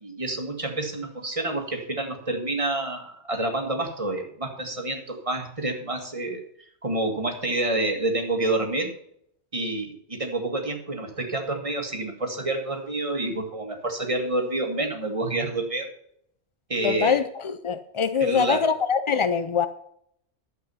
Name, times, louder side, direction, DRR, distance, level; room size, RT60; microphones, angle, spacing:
voice 1, 0.0-6.4 6.8-8.9 9.5-15.9 16.7-17.2 18.2-18.7, right 2 dB, 30° right, 3 dB, 1.9 m, -28 dB
voice 2, 16.8-19.7, left 6 dB, 50° left, 10 dB, 0.3 m, -23 dB
12.0 x 8.2 x 5.6 m, 0.69 s
omnidirectional pair, 1.2 m